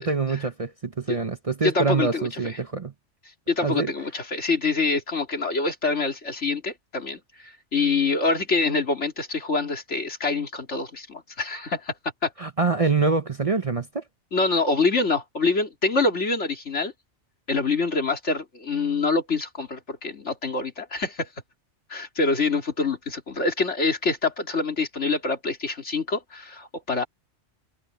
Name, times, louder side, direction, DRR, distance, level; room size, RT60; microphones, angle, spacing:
voice 1, 0.0-2.9 3.6-3.9 12.4-14.0, right 4 dB, 35° right, 0.8 m, -25 dB
voice 2, 1.6-2.6 3.5-11.9 12.2-12.3 14.3-16.9 17.5-21.3 21.9-27.1, left 3 dB, 70° left, 3.2 m, -25 dB
omnidirectional pair, 1.2 m